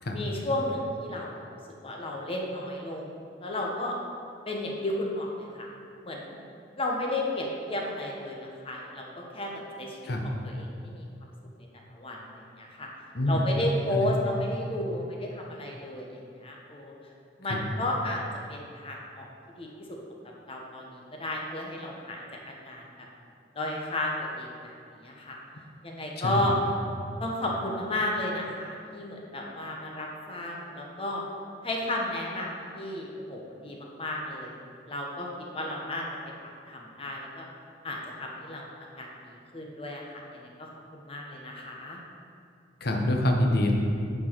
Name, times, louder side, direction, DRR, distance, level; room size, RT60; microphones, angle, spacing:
voice 1, 0.1-1.6 1.8-3.1 3.4-4.0 4.5-5.7 6.0-6.4 6.8-8.4 8.6-10.0 10.2-11.0 11.9-12.9 13.3-16.9 17.4-18.2 18.5-19.3 19.6-20.0 20.5-22.8 23.5-24.7 25.0-25.4 25.8-26.5 27.2-31.2 31.6-34.6 34.9-35.3 35.5-36.1 36.4-37.5 37.8-38.7 39.0-42.0, left 1 dB, 30° left, -1 dB, 0.9 m, -33 dB
voice 2, 26.2-26.5 42.8-43.7, left 1 dB, 60° left, 1 dB, 1.0 m, -26 dB
10.5 x 4.6 x 4.5 m, 2.4 s
head